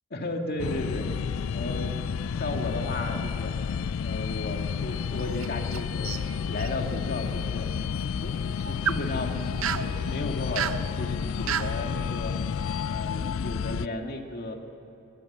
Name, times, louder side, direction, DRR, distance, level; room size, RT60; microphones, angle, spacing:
voice 1, 0.1-1.1 1.5-1.9 2.3-3.5 3.9-6.1 6.5-7.7 8.2-12.4 12.8-14.5, left 1 dB, 50° left, 3 dB, 2.0 m, -34 dB
sound 1, 0.6-13.9, left 6 dB, 75° left, 0.4 m, -31 dB
sound 2, 5.1-5.8 6.0-6.7 8.6-9.0 9.6-9.9 10.6-10.8 11.5-11.7, right 8 dB, 80° right, 0.7 m, -30 dB
22.0 x 19.5 x 7.3 m, 2.9 s
head